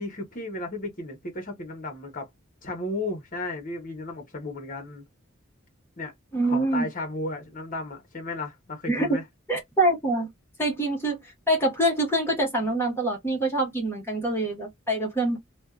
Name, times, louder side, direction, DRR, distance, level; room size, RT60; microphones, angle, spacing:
voice 1, 0.0-2.3 2.6-5.0 6.0-6.1 6.4-9.2, left 2 dB, 40° left, 1.0 m, -34 dB
voice 2, 6.3-6.9 8.9-9.2 9.5-10.3 10.6-11.2 11.5-15.4, right 1 dB, 10° left, 1.2 m, -25 dB
2.5 x 2.2 x 2.4 m
head